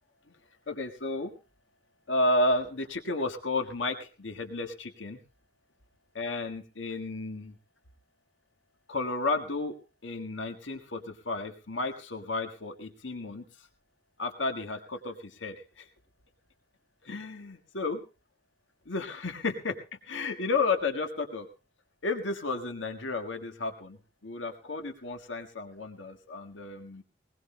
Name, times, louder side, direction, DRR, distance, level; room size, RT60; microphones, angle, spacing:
voice 1, 0.7-1.3 2.1-5.2 6.1-7.6 8.9-9.8 10.0-13.5 14.2-15.9 17.0-18.0 18.8-21.5 22.0-24.0 24.2-27.0, left 2 dB, 80° left, 5 dB, 1.7 m, -32 dB
20.5 x 20.5 x 2.2 m, 0.30 s
head